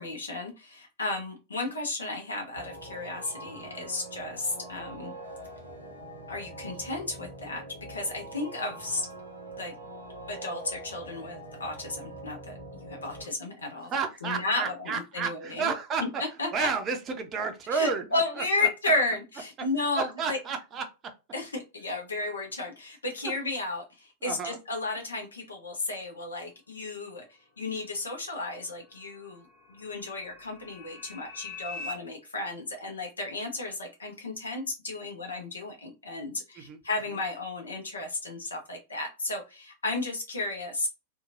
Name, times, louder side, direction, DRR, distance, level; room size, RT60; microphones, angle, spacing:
voice 1, 0.0-5.2 6.3-7.6 7.9-9.1 9.6-9.7 10.3-12.5 12.8-13.9 14.2-15.7 16.4-16.7 17.7-20.4 21.3-40.9, left 2 dB, 75° left, 2 dB, 0.6 m, -33 dB
sound 1, 2.6-13.2, right 1 dB, 85° right, 0.8 m, -44 dB
voice 2, 13.8-16.2 16.5-18.7 20.0-21.1 23.2-23.3 24.2-24.6 36.5-36.8, right 5 dB, 30° right, 5 dB, 0.5 m, -32 dB
sound 2, 27.6-31.9, left 3 dB, 45° left, 0.9 m, -45 dB
2.9 x 2.2 x 2.5 m, 0.29 s
figure-of-eight pair, 90°, 0 cm